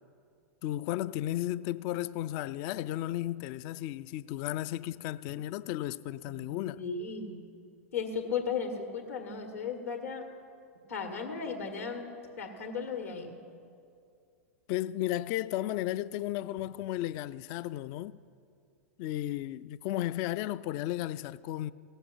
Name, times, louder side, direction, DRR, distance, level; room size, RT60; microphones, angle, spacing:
voice 1, 0.6-6.8 14.7-18.2 19.0-21.7, left 14 dB, 45° left, 0.3 m, -34 dB
voice 2, 6.8-7.4 7.9-10.2 10.9-12.1 12.4-13.4, left 5 dB, 75° left, 1.8 m, -35 dB
16.5 x 7.2 x 5.5 m
hypercardioid pair, 100°, 8 cm